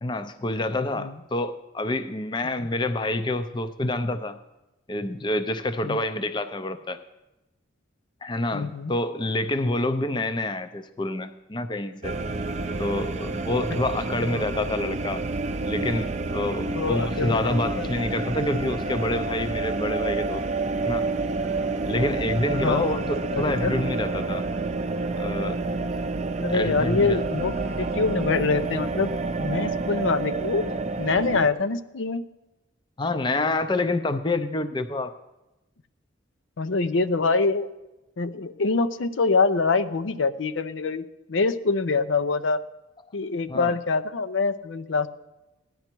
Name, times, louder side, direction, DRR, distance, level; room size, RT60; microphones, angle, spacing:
voice 1, 0.0-4.4 4.9-7.0 8.2-12.2 12.8-15.2 15.6-20.5 20.8-21.0 21.8-24.5 25.2-25.6 26.5-27.2 33.0-35.2 43.5-43.8, left 2 dB, 25° left, 10 dB, 0.5 m, -27 dB
voice 2, 8.5-8.9 14.2-14.5 16.7-17.9 22.6-23.7 26.4-29.1 29.4-30.6 31.0-32.2 36.6-37.7 38.2-41.0 41.3-42.6 43.1-45.1, left 4 dB, 75° left, 11 dB, 0.6 m, -25 dB
sound 1, 12.0-31.5, right 3 dB, 35° right, 0.5 m, -29 dB
16.5 x 10.5 x 4.5 m, 0.98 s
head